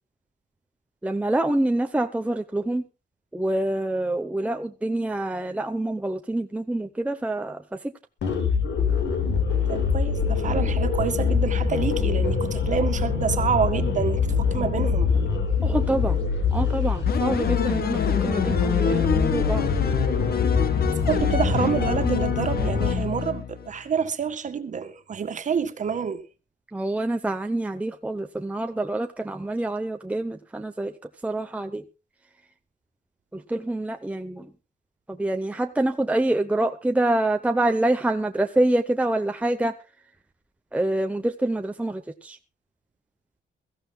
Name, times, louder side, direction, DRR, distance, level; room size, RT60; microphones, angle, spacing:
voice 1, 1.0-2.8 3.3-7.9 15.6-16.2 16.5-19.7 26.7-30.9 31.2-31.8 33.3-34.5 35.1-39.7 40.7-42.4, right 1 dB, 5° right, 0.8 m, -26 dB
sound 1, 8.2-22.9, left 5 dB, 75° left, 5.3 m, -24 dB
voice 2, 9.7-15.1 20.9-26.2, right 7 dB, 40° right, 1.8 m, -27 dB
sound 2, 17.1-23.7, left 7 dB, 55° left, 1.9 m, -27 dB
23.0 x 15.0 x 2.2 m
wide cardioid pair, 170°, 19 cm